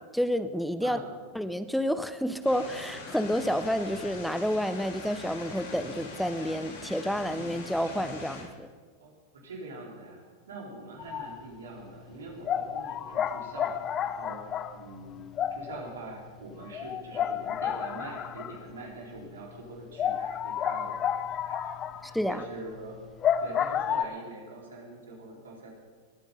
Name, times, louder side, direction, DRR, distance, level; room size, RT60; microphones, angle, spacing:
voice 1, 0.0-1.0 1.3-8.7 22.1-22.5, equal, ahead, 11 dB, 0.7 m, -29 dB
voice 2, 0.8-1.2 9.0-21.1 21.4-23.0 23.4-25.7, right 2 dB, 85° right, -1 dB, 4.0 m, -44 dB
sound 1, 2.4-8.4, left 3 dB, 75° left, 4.3 m, -43 dB
sound 2, 11.0-11.4 11.8-11.9 12.4-18.8 19.2-19.3 19.6-19.7 20.0-24.0, left 9 dB, 35° left, 0.8 m, -31 dB
21.0 x 9.0 x 5.3 m, 1.5 s
hypercardioid pair, 100°, 0 cm